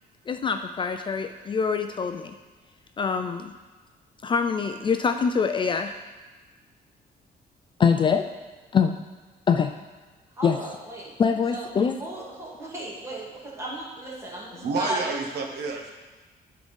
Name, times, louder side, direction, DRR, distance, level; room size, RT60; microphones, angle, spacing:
voice 1, 0.3-2.3 3.0-3.5 4.2-5.9 7.8-8.2 8.7-9.0 9.5-9.7 10.4-10.6 11.2-12.0, left 6 dB, 30° left, 6 dB, 0.3 m, -24 dB
voice 2, 10.4-11.2 11.5-11.7 12.0-15.1, right 1 dB, 15° right, -5 dB, 2.0 m, -35 dB
voice 3, 14.6-15.9, right 4 dB, 80° right, 2 dB, 1.2 m, -29 dB
11.5 x 3.8 x 5.3 m, 1.3 s
cardioid pair, 165°, 17 cm